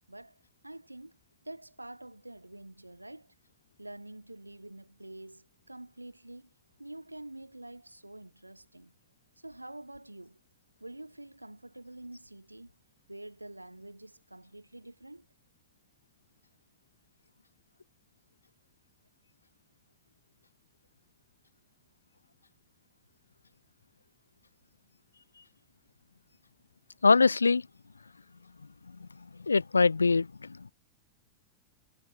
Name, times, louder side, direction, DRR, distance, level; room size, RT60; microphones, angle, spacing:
voice 1, 0.1-3.3 3.8-6.5 6.8-8.9 9.4-10.4 10.8-12.7 13.1-15.3, right 1 dB, 85° right, 2.1 m, -47 dB
voice 2, 27.0-27.6 29.0-29.1 29.5-30.5, left 4 dB, 80° left, 0.4 m, -23 dB
figure-of-eight pair, 90°, 0 cm